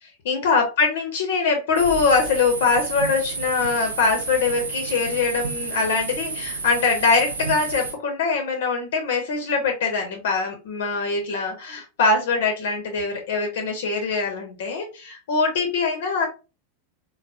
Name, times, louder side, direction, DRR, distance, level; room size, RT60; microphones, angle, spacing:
voice 1, 0.0-16.3, left 4 dB, 55° left, 3 dB, 0.6 m, -23 dB
sound 1, 1.8-7.9, right 4 dB, 70° right, 0.5 m, -31 dB
3.4 x 2.1 x 2.3 m, 0.30 s
figure-of-eight pair, 90°, 0 cm